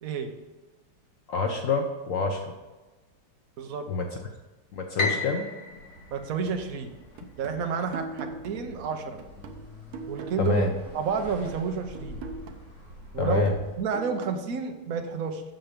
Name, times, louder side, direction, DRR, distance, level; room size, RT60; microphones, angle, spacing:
voice 1, 0.0-0.3 3.6-3.9 6.1-6.9 7.4-9.2 10.1-10.6 10.9-12.2 13.1-13.5 13.8-15.4, right 6 dB, 55° right, 5 dB, 1.0 m, -30 dB
voice 2, 1.3-2.5 3.9-4.1 4.7-5.4 10.4-10.7 13.2-13.5, left 4 dB, 90° left, 3 dB, 0.7 m, -26 dB
Piano, 5.0-7.2, left 3 dB, 40° left, 1.1 m, -33 dB
sound 1, 5.7-13.8, left 1 dB, 65° left, 3.2 m, -47 dB
sound 2, 6.5-10.9 11.2-14.5, right 4 dB, 80° right, 1.7 m, -43 dB
8.0 x 7.0 x 5.1 m, 1.2 s
omnidirectional pair, 2.4 m